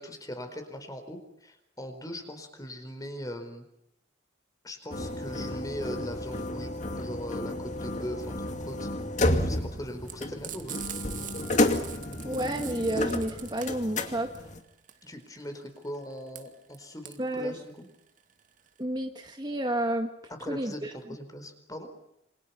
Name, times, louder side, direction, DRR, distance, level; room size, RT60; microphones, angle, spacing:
voice 1, 0.0-3.6 4.6-8.9 9.4-10.8 15.0-17.9 20.3-21.9, equal, 20° left, 8 dB, 4.5 m, -40 dB
sound 1, 4.9-14.6, left 1 dB, 40° left, 2.3 m, -31 dB
Frying (food), 10.0-18.8, right 10 dB, 45° right, 2.5 m, -43 dB
voice 2, 12.2-14.3 17.2-17.6 18.8-20.1 20.5-20.9, right 1 dB, 25° right, 4 dB, 1.7 m, -30 dB
28.0 x 26.5 x 5.9 m, 0.81 s
head